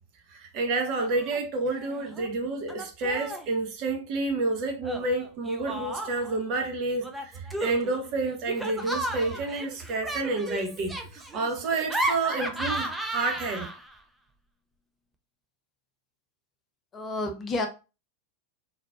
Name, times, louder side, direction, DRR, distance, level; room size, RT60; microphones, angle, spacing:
voice 1, 0.3-13.7, right 3 dB, 40° right, 1.1 m, -29 dB
Laughter, 1.0-1.4 1.7-2.3 2.7-3.5 4.8-6.4 7.0-14.0, right 1 dB, 5° right, 0.7 m, -34 dB
voice 2, 16.9-17.7, left 2 dB, 25° left, 0.8 m, -30 dB
4.2 x 3.9 x 2.5 m
figure-of-eight pair, 90°, 0 cm